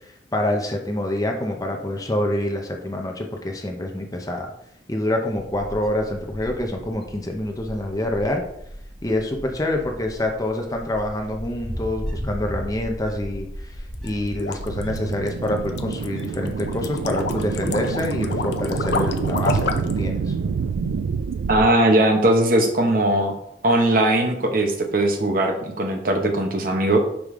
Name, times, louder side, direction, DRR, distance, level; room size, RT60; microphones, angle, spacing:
voice 1, 0.3-4.5 4.9-8.4 9.0-13.8 14.0-20.3, left 1 dB, 20° left, 3 dB, 0.6 m, -26 dB
Wind, 5.3-21.6, equal, 5° left, 2.1 m, -38 dB
sound 1, 13.9-20.0, left 4 dB, 65° left, 0.5 m, -29 dB
sound 2, 14.5-21.7, right 5 dB, 85° right, 0.3 m, -27 dB
voice 2, 21.5-23.3 23.6-27.0, right 1 dB, 50° right, 4 dB, 0.8 m, -19 dB
5.1 x 5.0 x 3.7 m, 0.76 s
head